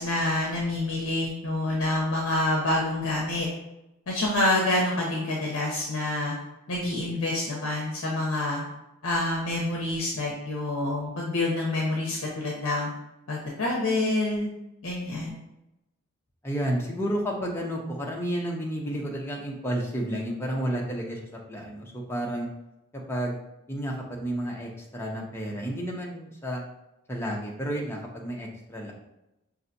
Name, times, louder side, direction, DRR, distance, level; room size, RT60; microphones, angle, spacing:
voice 1, 0.0-3.5 4.1-6.3 6.7-8.6 9.0-12.9 13.3-14.5 14.8-15.4, left 2 dB, 60° left, -3 dB, 0.6 m, -27 dB
voice 2, 16.4-22.5 23.1-23.4 23.7-26.6 27.1-28.9, right 1 dB, 10° left, -2 dB, 0.5 m, -31 dB
5.3 x 2.6 x 2.6 m, 0.91 s
head